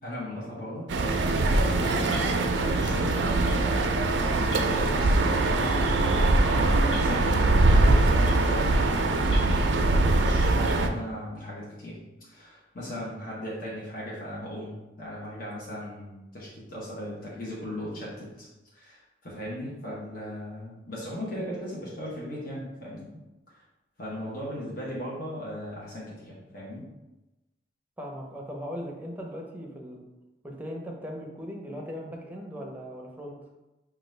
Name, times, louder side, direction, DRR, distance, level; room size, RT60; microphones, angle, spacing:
voice 1, 0.0-6.1 6.5-9.7 10.1-18.5 18.7-23.1 23.5-23.6 24.0-26.8, equal, 55° left, -6 dB, 0.9 m, -38 dB
sound 1, 0.9-10.9, right 2 dB, 85° right, 0.4 m, -22 dB
sound 2, 1.4-11.0, equal, 30° left, 0.9 m, -42 dB
voice 2, 28.0-30.0 30.4-33.4, equal, 10° right, -1 dB, 0.6 m, -38 dB
5.4 x 2.4 x 3.2 m, 1.0 s
head